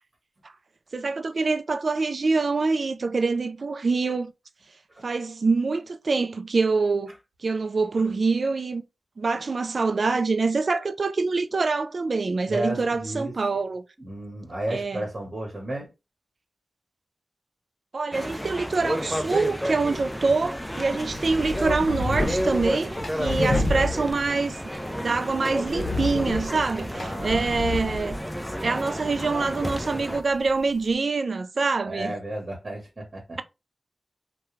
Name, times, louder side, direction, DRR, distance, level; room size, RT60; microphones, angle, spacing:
voice 1, 0.9-4.3 5.0-7.1 7.4-8.8 9.2-13.8 14.7-15.0 17.9-24.6 24.8-28.2 28.6-32.1, right 4 dB, 65° right, 0.3 m, -25 dB
voice 2, 12.4-13.3 14.0-15.9 26.9-27.4 31.8-33.4, right 1 dB, 50° right, 1.1 m, -33 dB
sound 1, 18.1-30.2, equal, 5° left, 0.4 m, -31 dB
sound 2, 19.9-30.9, left 2 dB, 60° left, 0.7 m, -32 dB
2.3 x 2.2 x 3.0 m
cardioid pair, 50°, 0 cm